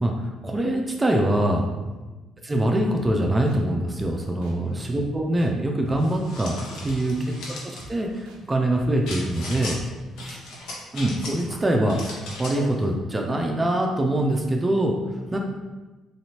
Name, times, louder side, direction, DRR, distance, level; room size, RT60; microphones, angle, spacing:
voice 1, 0.0-1.7 2.4-6.6 6.8-7.2 7.6-9.8 10.2-10.4 10.9-12.0 12.4-15.0 15.3-15.4, right 1 dB, 25° right, 1 dB, 0.4 m, -24 dB
voice 2, 1.8-2.2 4.5-4.9 6.9-7.6 9.9-10.4 15.1-15.4, equal, 35° left, -2 dB, 1.0 m, -41 dB
sound 1, 3.0-3.1 3.5-3.6 3.9-4.1 4.4-4.5 4.9-5.0 5.4-5.5 5.9-6.0 6.3-6.5 6.8-6.9 7.3-7.4 7.8-7.9 8.2-8.4 8.7-8.9 9.2-9.3 9.7-9.8 10.2-10.3, right 3 dB, 85° right, 0.5 m, -44 dB
sound 2, 6.0-7.9 9.1-9.8 10.2-11.5 11.9-12.7, left 2 dB, 75° left, 0.8 m, -37 dB
3.1 x 2.9 x 2.8 m, 1.2 s
supercardioid pair, 60°, 0 cm